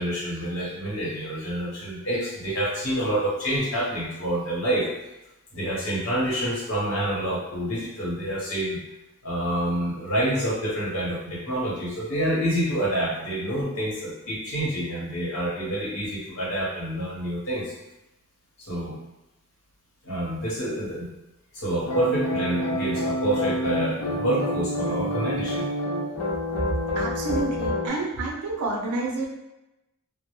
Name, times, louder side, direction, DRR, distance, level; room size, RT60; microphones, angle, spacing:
voice 1, 0.0-4.8 5.5-8.8 9.2-17.7 18.6-19.0 20.0-21.1 21.5-25.7, right 1 dB, 65° left, -6 dB, 1.0 m, -27 dB
sound 1, 21.8-27.9, left 1 dB, 85° left, 0.7 m, -28 dB
voice 2, 27.0-29.3, right 2 dB, 90° right, -1 dB, 0.5 m, -28 dB
2.1 x 2.0 x 2.9 m, 0.94 s
head